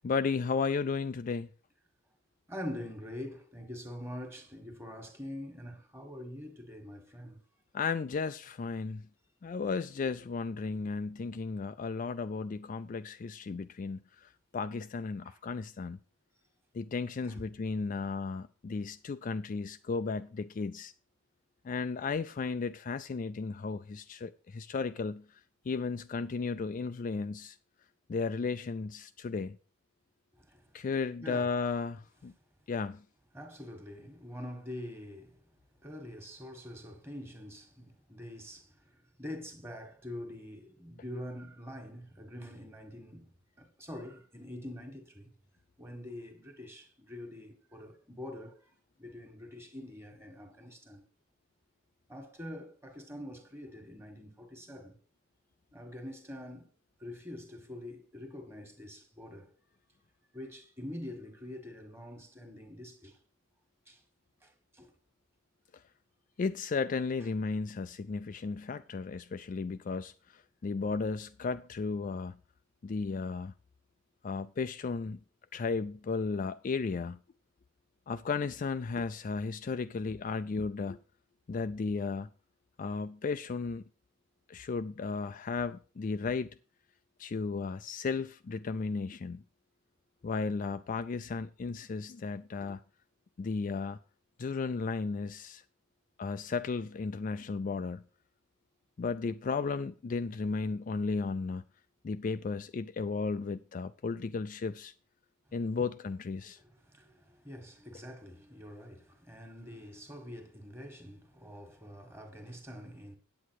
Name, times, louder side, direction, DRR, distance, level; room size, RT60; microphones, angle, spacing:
voice 1, 0.0-1.5 7.7-9.0 9.4-16.0 16.7-20.9 21.6-25.2 25.7-27.6 28.1-29.6 30.7-32.3 32.7-33.0 66.4-72.3 72.8-73.5 74.2-75.2 75.5-77.2 78.1-81.0 81.5-82.3 82.8-83.8 84.5-86.5 87.2-89.4 90.2-92.8 93.4-94.0 94.4-95.6 96.2-98.0 99.0-101.6 102.0-104.9 105.5-106.6, left 4 dB, 40° left, 0.4 m, -34 dB
voice 2, 2.5-7.4 15.2-15.4 17.2-17.4 30.3-30.7 31.2-31.5 33.3-35.4 35.8-38.9 39.2-43.3 43.6-45.3 45.8-48.7 49.0-51.0 52.1-55.0 55.7-56.7 57.0-59.5 60.3-63.2 63.9-64.0 64.4-64.9 105.7-105.9 106.4-113.2, left 1 dB, 10° right, 1.6 m, -45 dB
8.6 x 8.3 x 4.7 m
head